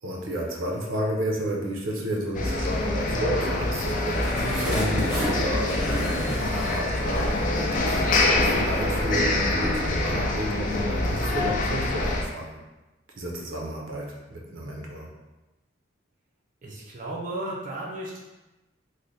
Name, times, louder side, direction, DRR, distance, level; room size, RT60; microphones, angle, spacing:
voice 1, 0.0-12.6 13.1-15.1, right 1 dB, 75° right, -1 dB, 0.6 m, -32 dB
sound 1, 2.3-12.2, left 2 dB, 40° left, 0.4 m, -25 dB
sound 2, 3.9-8.2 8.6-8.8, equal, 5° right, 0.7 m, -33 dB
voice 2, 16.6-18.2, right 1 dB, 40° right, -4 dB, 0.5 m, -34 dB
3.2 x 2.1 x 4.0 m, 1.1 s
head